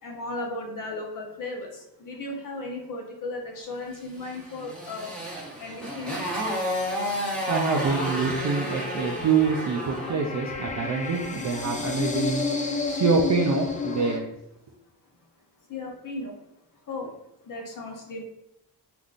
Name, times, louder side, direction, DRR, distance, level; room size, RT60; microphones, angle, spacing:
voice 1, 0.0-6.4 10.7-10.8 12.6-12.9 15.1-15.3 15.7-16.4 16.8-17.1 17.4-18.2, left 2 dB, 50° left, 0.8 m, -36 dB
Motorcycle, 4.2-10.2, equal, ahead, 1.0 m, -31 dB
voice 2, 7.5-12.4 12.9-14.3, right 5 dB, 45° right, 0.4 m, -25 dB
sound 1, 7.9-14.2, left 4 dB, 20° left, 0.3 m, -31 dB
3.5 x 2.5 x 2.4 m
cardioid pair, 85°, 42 cm